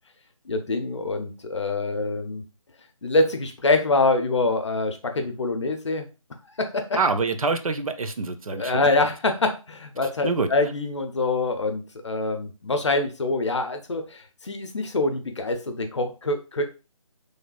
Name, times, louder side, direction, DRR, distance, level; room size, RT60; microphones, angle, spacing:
voice 1, 0.5-2.4 3.0-6.1 6.6-7.0 8.5-16.6, left 2 dB, 55° left, 6 dB, 0.6 m, -25 dB
voice 2, 6.9-9.0 10.2-10.5, right 4 dB, 75° right, 9 dB, 0.5 m, -26 dB
3.2 x 2.4 x 2.3 m, 0.31 s
figure-of-eight pair, 155°, 18 cm